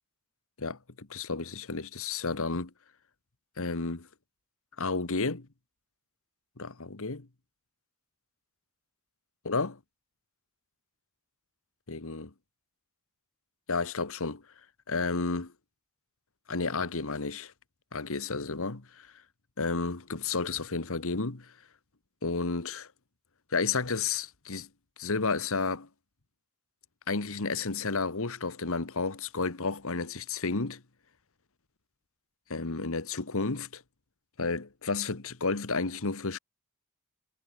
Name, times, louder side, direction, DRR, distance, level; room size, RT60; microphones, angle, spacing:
voice 1, 0.6-2.7 3.6-4.1 4.8-5.5 6.6-7.3 9.4-9.8 11.9-12.3 13.7-14.4 14.9-15.5 16.5-17.5 17.9-19.1 19.6-21.5 22.2-22.9 23.5-24.7 25.0-25.9 27.1-30.8 32.5-33.8 34.4-36.4, left 4 dB, 65° left, 1.5 m, -32 dB
head